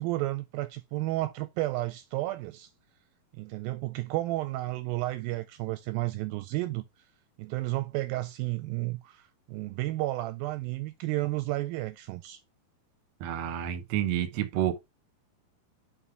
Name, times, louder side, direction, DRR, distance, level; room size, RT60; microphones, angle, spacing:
voice 1, 0.0-2.7 3.3-6.8 7.4-12.4, right 18 dB, 80° right, 2.2 m, -32 dB
voice 2, 13.2-14.8, right 11 dB, 65° right, 1.8 m, -29 dB
5.6 x 5.5 x 4.5 m
omnidirectional pair, 4.4 m